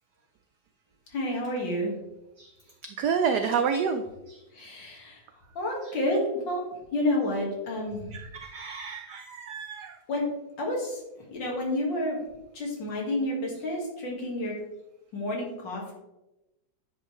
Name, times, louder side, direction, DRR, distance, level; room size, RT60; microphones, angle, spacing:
voice 1, 1.1-1.9 4.5-5.2 5.6-6.6 6.9-8.1 10.1-10.3 10.6-11.0 11.3-12.2 12.5-14.5 15.1-15.9, left 1 dB, 60° left, -1 dB, 2.4 m, -29 dB
voice 2, 3.0-4.4 8.1-10.0, right 6 dB, 85° right, 7 dB, 0.8 m, -29 dB
9.7 x 5.2 x 3.1 m, 0.96 s
omnidirectional pair, 2.3 m